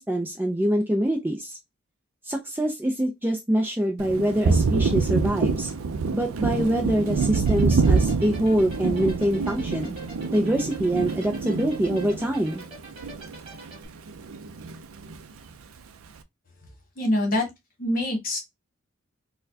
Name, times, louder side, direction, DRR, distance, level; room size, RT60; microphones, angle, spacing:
voice 1, 0.0-1.5 2.3-5.7 6.1-9.9 10.3-12.6, right 1 dB, 10° right, 0.4 m, -25 dB
Thunder, 4.0-13.8 14.1-15.2, right 4 dB, 80° right, 0.4 m, -26 dB
sound 1, 7.2-13.9, right 2 dB, 25° right, 1.4 m, -43 dB
voice 2, 17.0-17.4 17.8-18.4, left 1 dB, 40° left, 1.3 m, -24 dB
4.2 x 2.2 x 2.6 m
head